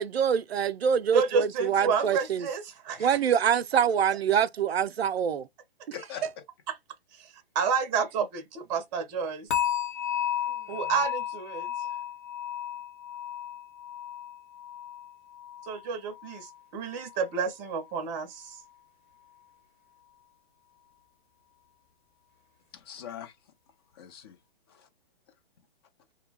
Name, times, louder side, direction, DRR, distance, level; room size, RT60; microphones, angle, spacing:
voice 1, 0.0-2.5 3.0-5.5, right 8 dB, 85° right, 0.5 m, -25 dB
voice 2, 1.1-3.2 7.1-9.5 10.7-11.9 15.6-18.6, right 6 dB, 20° right, 0.6 m, -30 dB
voice 3, 5.9-6.4 10.4-11.0 22.7-23.5 23.9-24.4 24.7-24.9, left 9 dB, 25° left, 0.5 m, -44 dB
sound 1, 9.5-16.6 16.9-17.3 17.8-17.9, left 11 dB, 50° left, 0.9 m, -34 dB
2.3 x 2.2 x 3.2 m
hypercardioid pair, 135°, 31 cm